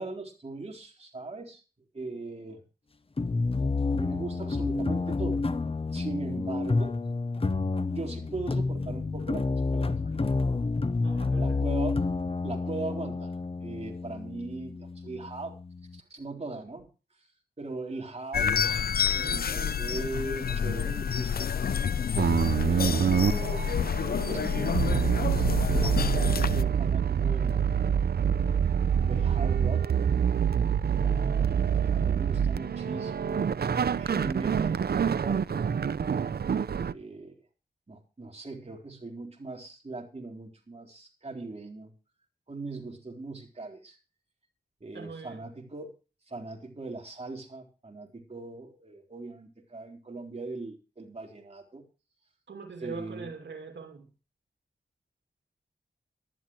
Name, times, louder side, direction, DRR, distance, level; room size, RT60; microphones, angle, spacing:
voice 1, 0.0-1.6 1.9-2.6 3.9-5.4 5.9-6.9 7.9-10.1 11.4-12.1 12.4-13.3 13.6-15.5 15.9-16.9 17.6-21.5 22.6-23.7 24.3-24.7 25.8-28.0 29.0-29.8 30.8-33.6 33.8-35.8 36.9-37.3 37.9-41.9 42.5-44.0 44.8-45.9 46.3-51.8 52.8-53.3, right 3 dB, 35° right, 1 dB, 3.9 m, -39 dB
sound 1, 3.2-16.0, left 3 dB, 30° left, 0.9 m, -29 dB
voice 2, 11.0-11.6 44.9-45.4 52.5-54.1, right 5 dB, 85° right, 4 dB, 2.5 m, -42 dB
sound 2, 18.3-26.6, left 7 dB, 55° left, 0.5 m, -28 dB
sound 3, 22.2-36.9, right 7 dB, 60° right, 0.6 m, -26 dB
19.0 x 11.5 x 3.1 m, 0.34 s
wide cardioid pair, 95°, 18 cm